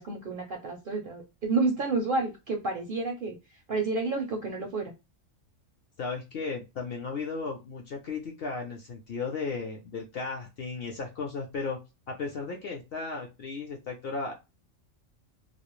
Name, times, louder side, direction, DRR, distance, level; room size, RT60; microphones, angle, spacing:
voice 1, 0.0-3.4 3.7-4.9, right 3 dB, 60° right, 2 dB, 0.6 m, -30 dB
voice 2, 6.0-11.8 12.1-14.3, left 4 dB, 60° left, 1 dB, 0.7 m, -35 dB
2.4 x 2.0 x 3.0 m, 0.25 s
omnidirectional pair, 1.4 m